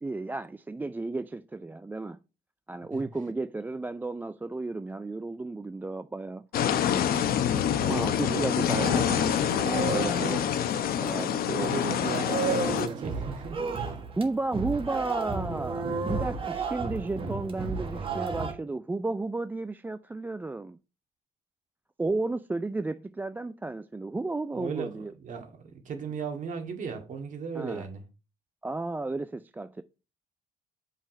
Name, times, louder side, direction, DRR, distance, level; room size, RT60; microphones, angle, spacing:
voice 1, 0.0-2.2 2.7-6.5 7.9-9.4 9.8-10.7 11.0-11.8 14.1-20.8 22.0-25.1 27.5-27.9 28.6-29.8, right 2 dB, 10° right, 0.3 m, -33 dB
sound 1, 6.5-12.9, left 9 dB, 60° left, 1.0 m, -26 dB
voice 2, 7.7-8.5 8.7-9.2 11.1-14.0 24.5-28.0, right 6 dB, 50° right, 2.0 m, -36 dB
sound 2, 8.8-11.3 11.7-18.5, right 4 dB, 30° right, 1.5 m, -33 dB
7.1 x 5.6 x 4.3 m
cardioid pair, 110°, 17 cm